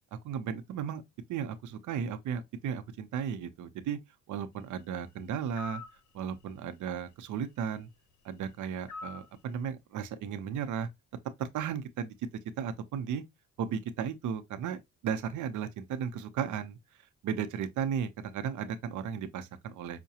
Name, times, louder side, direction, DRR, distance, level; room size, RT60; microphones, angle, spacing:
voice 1, 0.2-1.0 1.3-4.0 4.3-5.8 6.1-7.9 8.2-10.9 11.4-12.1 12.6-13.2 13.6-16.8 17.2-20.0, right 8 dB, 75° right, 0.7 m, -35 dB
sound 1, 5.5-6.0 8.9-9.3, left 3 dB, 70° left, 0.7 m, -42 dB
5.7 x 2.2 x 2.7 m
cardioid pair, 90°, 30 cm